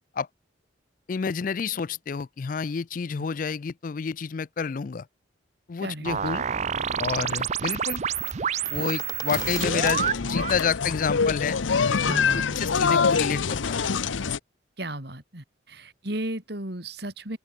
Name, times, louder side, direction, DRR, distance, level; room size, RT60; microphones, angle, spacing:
voice 1, 1.1-5.1 5.7-6.5 7.0-8.0 8.7-11.6 11.9-12.0 12.3-13.8, left 5 dB, 45° left, 0.4 m, -29 dB
sound 1, 6.0-10.6, right 8 dB, 35° right, 0.4 m, -29 dB
sound 2, 6.4-13.1, left 4 dB, 20° left, 2.1 m, -45 dB
sound 3, 9.3-14.4, left 5 dB, 85° left, 0.7 m, -25 dB
voice 2, 12.0-12.7 14.8-17.4, right 1 dB, 55° right, 3.5 m, -34 dB
open air
head